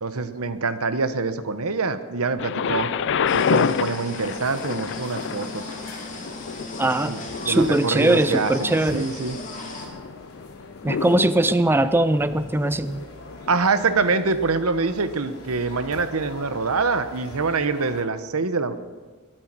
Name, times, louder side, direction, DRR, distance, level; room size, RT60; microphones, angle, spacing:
voice 1, 0.0-2.9 3.3-5.7 7.1-9.4 13.5-18.7, right 4 dB, 75° right, 12 dB, 1.0 m, -25 dB
Thunder, 2.4-14.2 15.0-15.1, left 6 dB, 60° left, 0.5 m, -29 dB
sound 1, 3.3-9.9, left 3 dB, 35° left, 2.8 m, -37 dB
sound 2, 4.2-18.0, left 1 dB, 75° left, 3.5 m, -43 dB
voice 2, 6.8-7.1 7.5-9.0 10.8-13.1, right 1 dB, 10° right, 13 dB, 0.4 m, -20 dB
22.0 x 9.1 x 6.1 m, 1.4 s
head